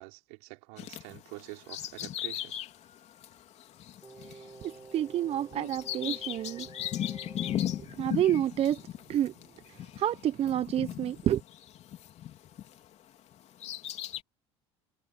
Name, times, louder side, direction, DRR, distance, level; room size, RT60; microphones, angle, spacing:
voice 1, 0.0-2.6, right 29 dB, 75° right, 3.5 m, -47 dB
Bird vocalization bird call bird song, 0.8-12.9 13.3-14.2, left 11 dB, 50° left, 3.2 m, -38 dB
Singing, 4.0-7.9 8.2-8.3, right 3 dB, 20° right, 6.4 m, -50 dB
voice 2, 4.9-6.7 8.0-8.8 9.1-9.3 10.0-11.4, right 11 dB, 45° right, 0.7 m, -28 dB
hypercardioid pair, 85°, 15 cm